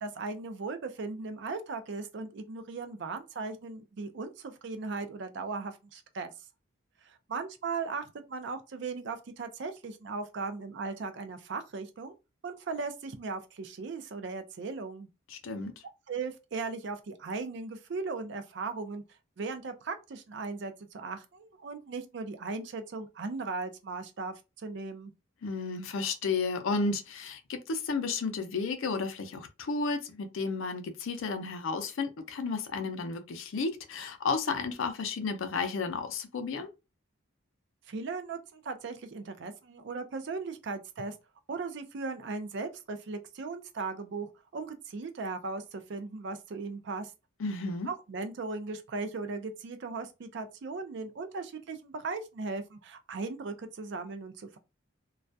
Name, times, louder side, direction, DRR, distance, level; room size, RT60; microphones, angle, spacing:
voice 1, 0.0-6.3 7.0-12.1 12.4-15.1 16.1-19.0 19.4-25.1 37.9-41.1 41.5-47.1 47.9-54.6, right 4 dB, 55° right, 0.4 m, -37 dB
voice 2, 15.3-15.7 25.4-36.7 47.4-47.9, left 4 dB, 70° left, 0.4 m, -32 dB
2.3 x 2.1 x 2.6 m
head